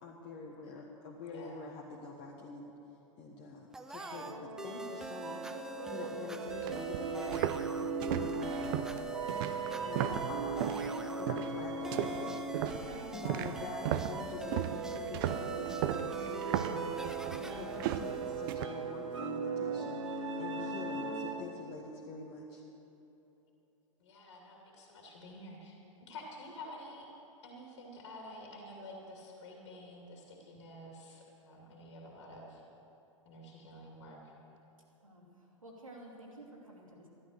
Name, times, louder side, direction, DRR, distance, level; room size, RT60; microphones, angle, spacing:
voice 1, 0.0-2.7 3.2-7.6 8.1-8.6 9.8-10.8 11.1-12.3 12.6-17.2 17.4-22.6, left 4 dB, 35° left, -3 dB, 1.5 m, -46 dB
voice 2, 1.3-1.7 24.0-25.7 26.1-27.1 27.4-32.6 33.2-34.3, left 1 dB, 60° left, -1 dB, 2.5 m, -49 dB
sound 1, 3.7-19.2, right 2 dB, 5° right, 0.4 m, -46 dB
sound 2, 3.9-21.6, right 4 dB, 65° right, 1.1 m, -39 dB
sound 3, 6.5-10.9 11.3-11.6 11.9-18.7, right 11 dB, 40° right, 0.6 m, -36 dB
voice 3, 35.0-37.1, right 1 dB, 80° right, -2 dB, 2.8 m, -52 dB
14.0 x 12.0 x 6.6 m, 3.0 s
figure-of-eight pair, 100°, 17 cm